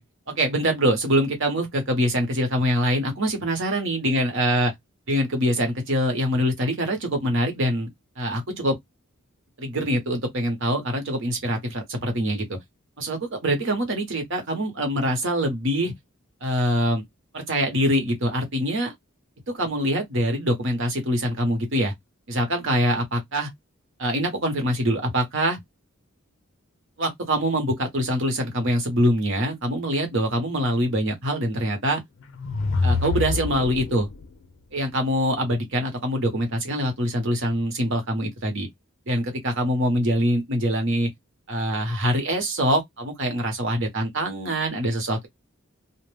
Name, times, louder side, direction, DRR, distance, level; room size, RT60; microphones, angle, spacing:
voice 1, 0.3-4.7 5.1-7.9 8.2-8.8 9.6-12.6 13.0-15.9 16.4-17.0 17.3-18.9 19.5-21.9 22.3-23.5 24.0-25.6 27.0-32.0 32.8-34.1 34.7-38.7 39.1-41.1 41.5-45.3, equal, 60° right, 1.0 m, -24 dB
sound 1, 32.2-34.3, left 4 dB, 60° left, 0.4 m, -26 dB
2.4 x 2.2 x 3.2 m
head